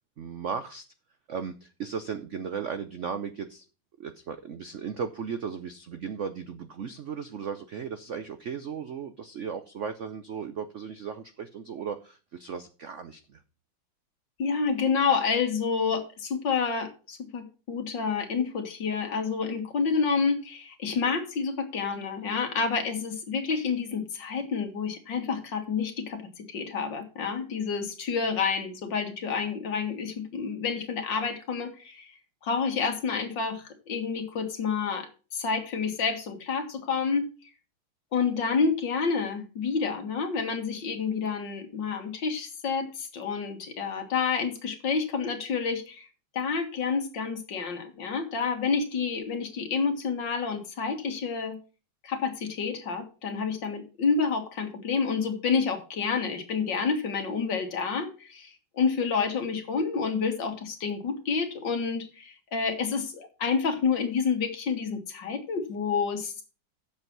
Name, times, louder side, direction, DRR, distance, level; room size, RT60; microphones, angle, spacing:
voice 1, 0.2-0.8 1.3-3.6 4.0-13.4, right 6 dB, 85° right, 10 dB, 0.6 m, -36 dB
voice 2, 14.4-32.1 32.4-37.3 38.1-46.1 46.3-51.6 52.0-66.4, left 5 dB, 60° left, 5 dB, 2.3 m, -29 dB
8.6 x 7.2 x 6.0 m, 0.34 s
omnidirectional pair, 2.2 m